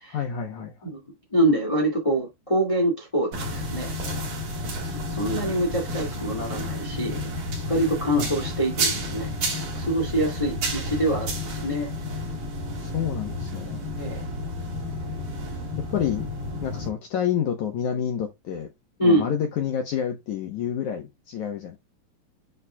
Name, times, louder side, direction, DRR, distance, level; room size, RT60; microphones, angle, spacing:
voice 1, 0.1-0.9 8.2-8.4 12.8-13.8 15.8-16.3 16.6-18.7 19.0-21.8, left 8 dB, 70° left, 1.9 m, -29 dB
voice 2, 0.8-3.9 5.1-7.2 7.6-9.3 9.7-11.9 14.0-14.2 19.0-19.2, right 1 dB, 30° left, 0.6 m, -25 dB
sound 1, 3.3-16.9, equal, 50° right, 4.2 m, -31 dB
9.5 x 4.9 x 2.3 m
omnidirectional pair, 4.9 m